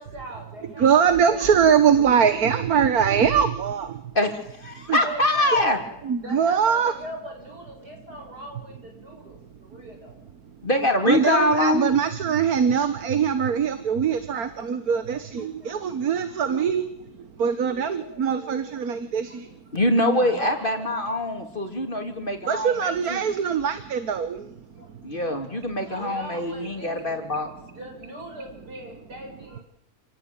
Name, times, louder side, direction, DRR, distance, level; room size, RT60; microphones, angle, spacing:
voice 1, 0.0-2.1 4.9-5.9 6.2-10.2 11.2-11.6 14.5-14.9 15.4-16.7 20.2-20.9 23.3-23.5 24.7-24.9 25.8-27.3 27.7-29.6, right 1 dB, 85° right, 2 dB, 8.2 m, -41 dB
voice 2, 0.8-3.9 4.8-5.0 6.0-6.9 9.7-9.8 11.1-16.9 17.2-19.6 22.5-24.9, right 7 dB, 70° right, 10 dB, 1.8 m, -22 dB
voice 3, 4.2-5.8 10.6-11.9 19.7-23.2 25.0-27.5, left 1 dB, 30° left, 4 dB, 3.5 m, -24 dB
28.5 x 18.5 x 9.0 m, 0.77 s
omnidirectional pair, 1.7 m